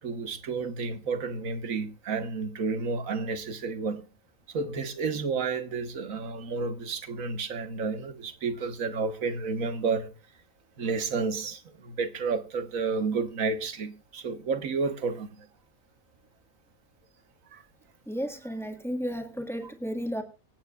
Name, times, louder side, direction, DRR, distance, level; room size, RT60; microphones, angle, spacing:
voice 1, 0.0-4.0 4.5-10.1 10.8-15.4 17.5-17.6, right 4 dB, 85° right, 1.6 m, -31 dB
voice 2, 18.1-20.2, equal, ahead, 1.6 m, -33 dB
24.5 x 9.2 x 2.4 m
omnidirectional pair, 1.4 m